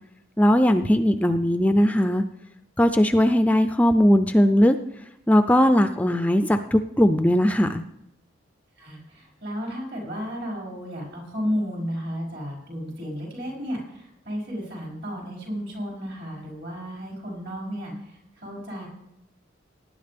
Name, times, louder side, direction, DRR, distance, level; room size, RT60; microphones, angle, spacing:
voice 1, 0.4-2.2 2.8-4.8 5.3-7.8, equal, 10° left, 9 dB, 0.3 m, -19 dB
voice 2, 8.8-18.9, equal, 65° right, -2 dB, 5.7 m, -33 dB
18.5 x 10.0 x 3.5 m, 0.82 s
head